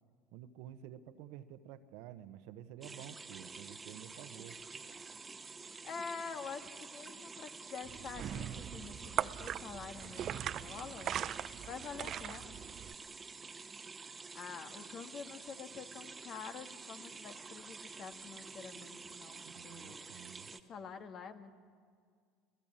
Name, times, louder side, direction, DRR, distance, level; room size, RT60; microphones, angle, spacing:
voice 1, 0.3-4.6 19.4-20.5, right 11 dB, 70° right, 11 dB, 1.1 m, -51 dB
sound 1, 2.8-20.6, right 4 dB, 20° right, 1.3 m, -49 dB
voice 2, 5.8-11.1 11.7-12.6 14.3-20.2 20.7-21.5, left 6 dB, 45° left, 7 dB, 1.8 m, -47 dB
sound 2, 7.8-12.9, right 10 dB, 50° right, 0.6 m, -40 dB
25.5 x 17.0 x 9.0 m, 2.1 s
hypercardioid pair, 80°, 0 cm